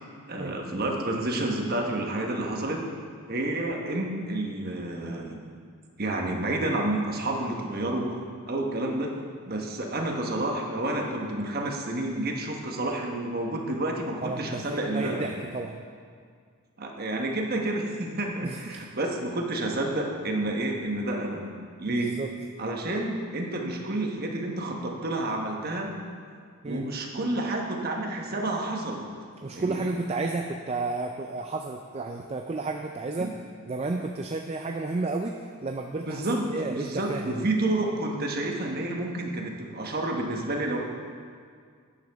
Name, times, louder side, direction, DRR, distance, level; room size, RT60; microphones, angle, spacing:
voice 1, 0.3-2.8 3.3-5.4 6.0-8.2 8.5-9.2 9.5-15.4 16.8-21.4 21.8-22.1 22.6-25.9 26.6-29.1 29.5-29.9 33.2-33.3 36.0-40.8, right 2 dB, 45° right, 1 dB, 1.2 m, -29 dB
voice 2, 14.2-15.8 18.4-18.8 21.9-22.3 26.6-26.9 29.4-33.3 33.7-36.3 36.5-37.5, right 3 dB, 25° right, 3 dB, 0.4 m, -32 dB
12.0 x 9.7 x 3.5 m, 2.1 s
head